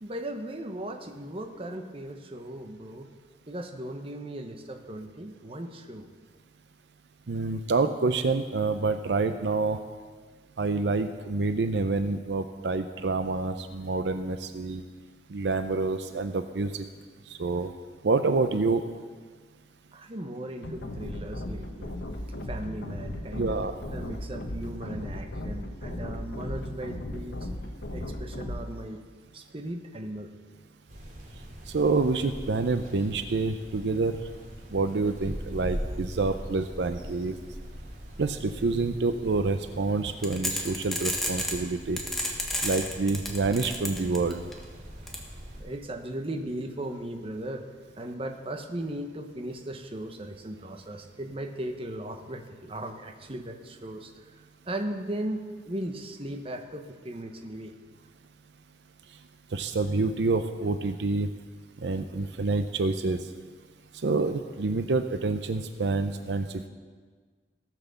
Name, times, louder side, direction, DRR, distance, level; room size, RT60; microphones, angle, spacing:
voice 1, 0.0-3.1 3.5-6.1 19.9-21.9 22.5-23.6 23.9-27.5 27.9-29.0 29.3-30.3 45.6-47.7 48.0-54.1 54.7-57.7, right 1 dB, 30° right, 5 dB, 1.0 m, -37 dB
voice 2, 7.3-9.8 10.6-14.8 15.3-16.8 17.3-17.7 18.0-18.8 23.3-23.8 31.7-34.2 34.7-37.4 38.2-42.0 42.6-44.4 59.5-61.3 61.8-63.2 64.0-66.7, right 3 dB, 75° right, 9 dB, 0.6 m, -27 dB
sound 1, 20.6-28.6, left 1 dB, 75° left, 1.0 m, -36 dB
sound 2, 30.9-45.6, equal, 50° right, 2.5 m, -41 dB
sound 3, 40.2-41.6 42.0-44.5 45.1-45.2, equal, ahead, 1.4 m, -30 dB
17.5 x 6.0 x 6.9 m, 1.5 s
head